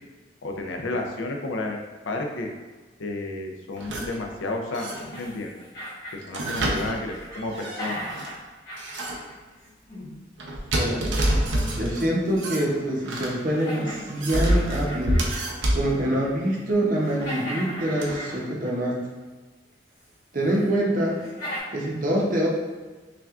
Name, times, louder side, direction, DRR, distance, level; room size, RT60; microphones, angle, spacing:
voice 1, 0.4-1.8 2.0-2.5 3.0-5.5 6.1-8.0, left 2 dB, 85° left, 2 dB, 0.5 m, -31 dB
sound 1, 3.8-4.2 4.7-5.3 6.2-8.3 8.8-9.3 10.4-12.1 12.4-13.3 13.9-15.9 17.2-17.3 18.0-18.2, right 1 dB, 80° right, 0.6 m, -27 dB
sound 2, 4.9-6.8 7.1-10.1 12.3-12.4 12.9-13.0 13.5-15.6 15.9-16.4 16.7-18.9 20.0-20.1 20.6-20.7 21.1-21.6, equal, 50° left, 1.5 m, -38 dB
voice 2, 11.8-15.2 15.7-19.0 20.3-21.2 21.7-22.5, right 1 dB, 45° right, -3 dB, 0.7 m, -25 dB
5.6 x 2.4 x 2.4 m, 1.3 s
head